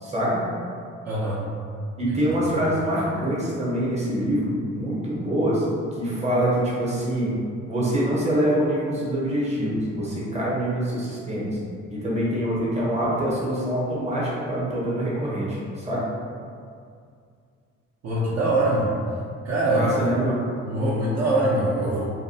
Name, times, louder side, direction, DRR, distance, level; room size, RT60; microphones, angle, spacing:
voice 1, 0.0-0.4 2.0-5.6 5.9-7.3 7.7-11.5 11.9-16.0 19.7-20.4, right 1 dB, 20° right, -6 dB, 0.8 m, -25 dB
voice 2, 1.1-1.4 2.1-2.2 18.0-18.9 19.4-19.9 20.7-22.0, right 1 dB, 60° right, -7 dB, 0.6 m, -23 dB
2.5 x 2.2 x 2.7 m, 2.2 s
cardioid pair, 90°, 30 cm